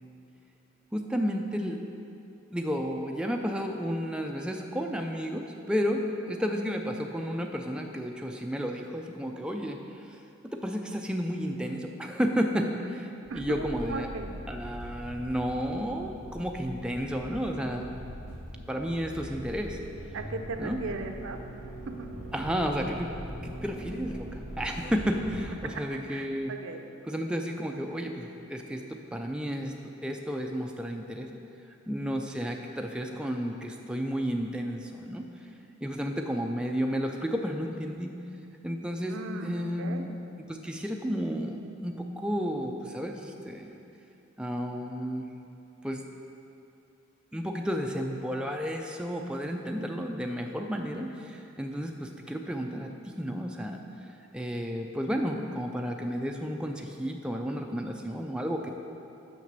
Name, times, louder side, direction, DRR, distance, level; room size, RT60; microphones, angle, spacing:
voice 1, 0.9-1.8 2.5-10.2 10.5-14.1 14.5-18.0 18.7-19.8 20.6-20.8 22.3-23.1 23.4-26.5 27.1-31.3 31.9-35.3 35.8-38.1 38.6-43.8 44.4-45.3 45.8-46.0 47.3-53.8 54.3-58.7, equal, 5° right, 2 dB, 0.3 m, -32 dB
sound 1, 13.2-25.5, equal, 85° left, 2.1 m, -42 dB
voice 2, 13.3-14.3 20.1-21.4 21.9-22.1 26.1-26.8 39.1-40.0, right 3 dB, 65° right, 6 dB, 0.6 m, -37 dB
6.3 x 5.9 x 6.6 m, 2.7 s
head